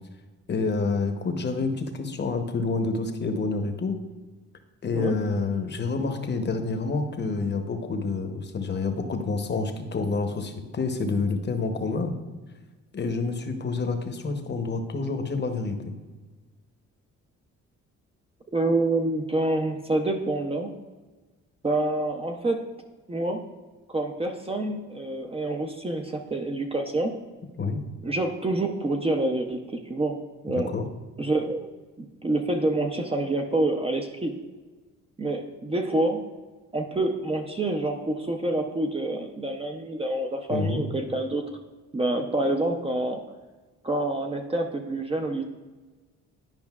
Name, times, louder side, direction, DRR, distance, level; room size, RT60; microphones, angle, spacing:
voice 1, 0.5-4.0 4.8-12.1 12.9-15.9 27.6-27.8 30.5-30.8 40.5-40.8, left 3 dB, 35° left, 6 dB, 0.8 m, -28 dB
voice 2, 18.5-20.7 21.6-22.6 23.1-23.4 23.9-27.1 28.0-30.2 30.4-30.7 31.2-31.7 32.0-34.3 35.2-36.2 36.7-41.4 41.9-43.2 43.8-45.4, right 2 dB, 20° right, 3 dB, 0.5 m, -27 dB
10.5 x 5.1 x 2.4 m, 1.3 s
cardioid pair, 90°, 30 cm